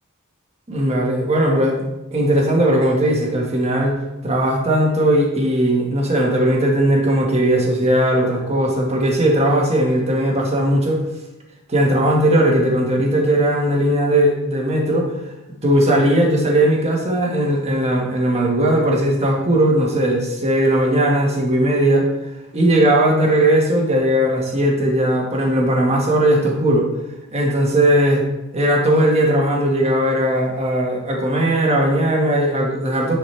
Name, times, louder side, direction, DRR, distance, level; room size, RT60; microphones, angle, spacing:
voice 1, 0.7-3.9 4.2-11.0 11.7-15.1 15.6-22.1 22.5-26.9 27.3-28.2 28.5-33.1, right 1 dB, 30° right, -2 dB, 1.6 m, -18 dB
10.0 x 5.0 x 3.4 m, 1.0 s
head